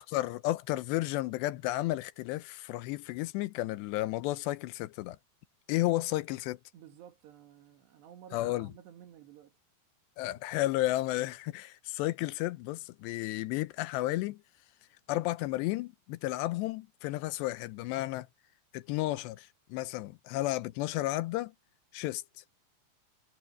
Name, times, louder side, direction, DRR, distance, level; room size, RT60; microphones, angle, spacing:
voice 1, 0.0-5.2 5.7-6.6 8.3-8.7 10.2-14.4 15.1-18.3 18.7-21.5 21.9-22.2, left 17 dB, 85° left, 3.0 m, -32 dB
voice 2, 6.7-9.5, right 10 dB, 80° right, 4.3 m, -53 dB
omnidirectional pair, 4.8 m